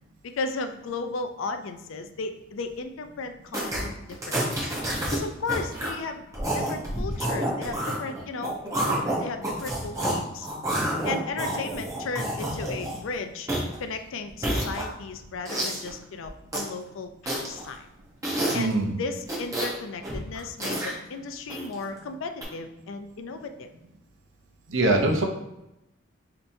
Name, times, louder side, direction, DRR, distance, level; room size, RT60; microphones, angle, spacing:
voice 1, 0.2-4.6 5.1-10.5 11.0-13.5 13.8-17.9 18.5-23.7, left 4 dB, 80° left, 7 dB, 0.4 m, -35 dB
sound 1, 3.5-3.8 4.1-5.2 5.4-5.9 6.3-10.2 10.4-13.1 13.5-13.8 14.3-15.1 15.5-15.9 16.2-16.7 17.3-17.7 18.2-18.7 19.2-19.8 20.0-20.9 21.5-21.8 22.4-22.5, right 1 dB, 15° right, 0.9 m, -29 dB
voice 2, 18.5-18.9 24.7-25.3, right 2 dB, 70° right, 2 dB, 0.6 m, -23 dB
5.4 x 2.9 x 2.6 m, 0.90 s
head